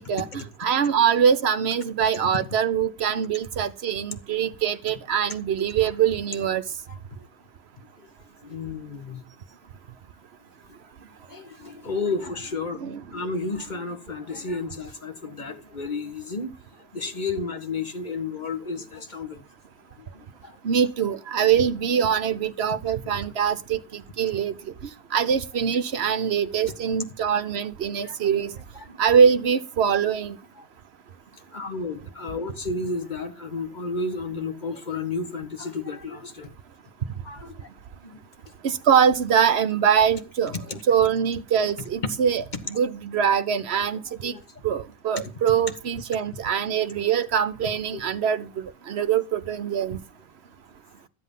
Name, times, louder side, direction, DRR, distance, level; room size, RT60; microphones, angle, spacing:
voice 1, 0.0-6.6 12.8-13.0 20.6-24.5 25.1-28.5 29.0-30.4 38.6-40.5 40.9-44.3 44.6-50.0, right 7 dB, 50° right, 1.1 m, -23 dB
voice 2, 6.9-7.3 7.8-8.1 8.4-9.3 11.3-12.8 13.1-16.5 16.9-19.4 20.0-20.6 28.0-28.2 28.7-29.0 31.5-36.5 37.2-37.7 38.0-38.2 40.5-40.8 44.0-44.4, left 3 dB, 35° left, 1.6 m, -32 dB
13.5 x 8.0 x 5.5 m
omnidirectional pair, 1.5 m